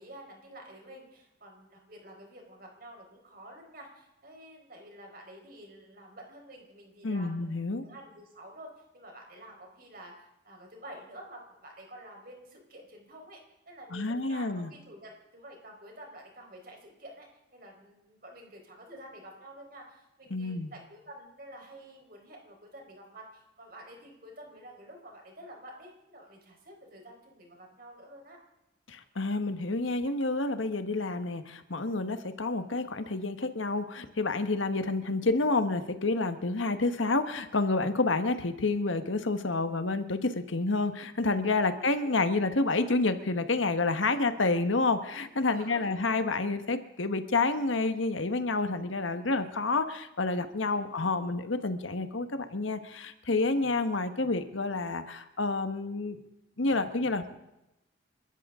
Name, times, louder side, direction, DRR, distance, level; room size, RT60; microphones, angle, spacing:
voice 1, 0.0-17.3 17.5-28.4 41.4-41.7 44.1-44.2 45.5-45.9 50.6-50.9 53.6-53.7, right 1 dB, 50° right, 1 dB, 4.4 m, -49 dB
voice 2, 7.0-7.8 13.9-14.7 20.3-20.7 28.9-56.2 56.6-57.4, left 3 dB, 85° left, 9 dB, 1.3 m, -29 dB
29.0 x 13.5 x 3.7 m, 0.92 s
head